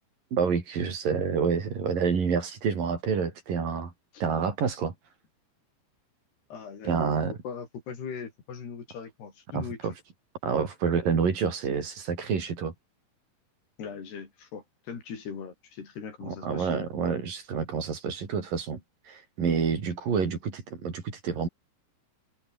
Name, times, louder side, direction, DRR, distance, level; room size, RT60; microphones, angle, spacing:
voice 1, 0.3-3.9 4.2-4.9 6.8-7.3 9.5-9.9 10.4-12.7 16.3-21.5, right 6 dB, 60° right, 5.9 m, -28 dB
voice 2, 6.5-9.8 13.8-16.9, left 6 dB, 85° left, 6.9 m, -40 dB
omnidirectional pair, 4.5 m